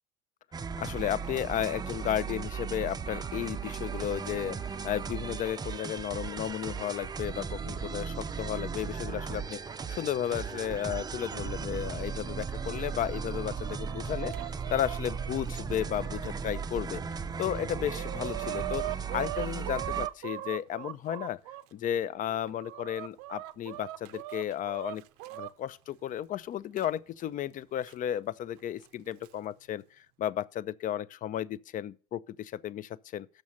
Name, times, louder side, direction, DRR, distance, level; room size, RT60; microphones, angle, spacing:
sound 1, 0.5-20.1, right 6 dB, 20° right, 0.4 m, -37 dB
voice 1, 0.8-14.4 14.7-21.4 21.7-25.0 25.3-33.3, left 11 dB, 40° left, 0.5 m, -34 dB
Chicken rooster, 13.2-16.7 17.2-17.3 17.6-21.6 22.3-25.5 26.8-26.9 27.9-28.0 28.9-29.3, right 16 dB, 75° right, 0.5 m, -40 dB
6.5 x 6.2 x 7.0 m
supercardioid pair, 85°, 20 cm